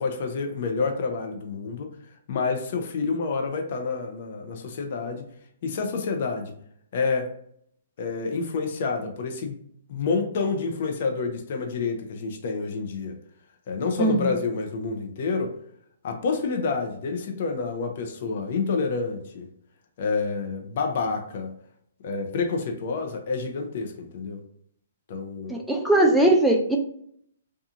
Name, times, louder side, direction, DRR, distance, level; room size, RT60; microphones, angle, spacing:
voice 1, 0.0-1.9 2.3-5.2 5.6-6.5 6.9-7.3 8.0-9.6 9.9-13.2 13.7-15.5 16.0-19.5 20.0-21.5 22.0-24.4 25.1-25.6, left 4 dB, 55° left, 4 dB, 0.5 m, -28 dB
voice 2, 14.0-14.3 25.5-26.8, right 1 dB, ahead, -1 dB, 0.4 m, -20 dB
2.8 x 2.3 x 2.5 m, 0.67 s
hypercardioid pair, 140°, 0 cm